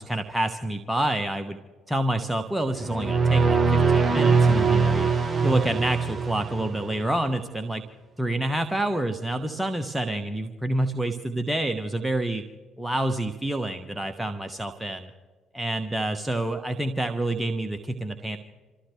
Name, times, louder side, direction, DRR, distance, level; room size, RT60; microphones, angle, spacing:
voice 1, 0.0-1.6 1.9-5.1 5.4-7.8 8.2-12.4 12.8-15.1 15.5-18.4, right 1 dB, 5° right, 6 dB, 1.2 m, -28 dB
sound 1, 2.7-7.1, right 4 dB, 25° right, 1.7 m, -22 dB
27.0 x 14.5 x 3.3 m, 1.4 s
figure-of-eight pair, 50°, 0 cm